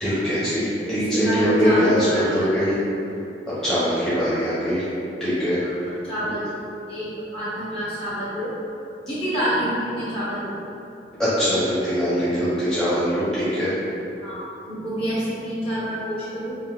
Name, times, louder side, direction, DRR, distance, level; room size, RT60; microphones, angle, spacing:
voice 1, 0.0-2.0 2.3-2.7 3.6-4.9 5.2-5.6 11.2-13.7, equal, 5° left, -13 dB, 0.9 m, -22 dB
voice 2, 0.8-2.8 5.6-5.7 6.0-6.5 6.9-8.5 9.0-10.6 14.2-16.6, equal, 35° left, -11 dB, 1.5 m, -28 dB
5.4 x 2.6 x 2.5 m, 2.8 s
head